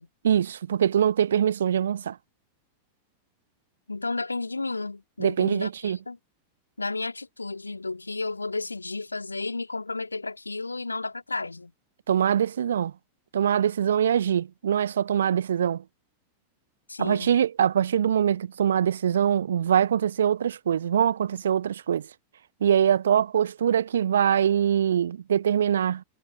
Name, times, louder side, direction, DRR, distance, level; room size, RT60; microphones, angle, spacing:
voice 1, 0.2-2.2 5.2-6.0 12.1-12.9 13.3-15.8 17.0-22.1 22.6-26.0, right 9 dB, 65° right, 0.8 m, -23 dB
voice 2, 3.9-6.2 6.8-11.7 16.9-17.4, left 3 dB, 80° left, 2.7 m, -32 dB
figure-of-eight pair, 90°, 0 cm